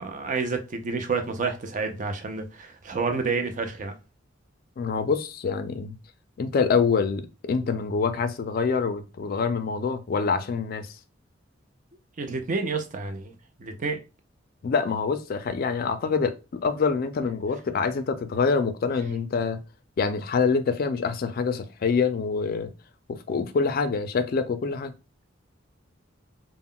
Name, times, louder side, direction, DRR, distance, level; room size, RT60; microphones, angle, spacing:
voice 1, 0.0-3.9 12.2-13.3 13.6-14.0, right 4 dB, 40° right, 0.5 m, -29 dB
voice 2, 4.8-6.0 6.4-11.0 14.6-19.6 20.0-22.7 23.1-24.9, left 5 dB, 50° left, 0.3 m, -26 dB
2.2 x 2.0 x 3.6 m
head